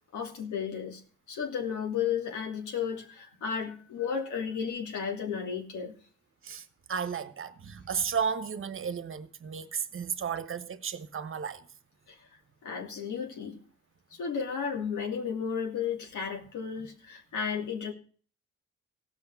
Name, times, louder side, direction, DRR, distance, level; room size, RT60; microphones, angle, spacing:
voice 1, 0.1-1.0 1.3-5.9 12.1-12.3 12.6-13.6 14.1-17.9, left 7 dB, 75° left, 2.7 m, -33 dB
voice 2, 6.4-11.6, right 7 dB, 45° right, 1.2 m, -34 dB
16.0 x 5.8 x 7.1 m
cardioid pair, 90°, 30 cm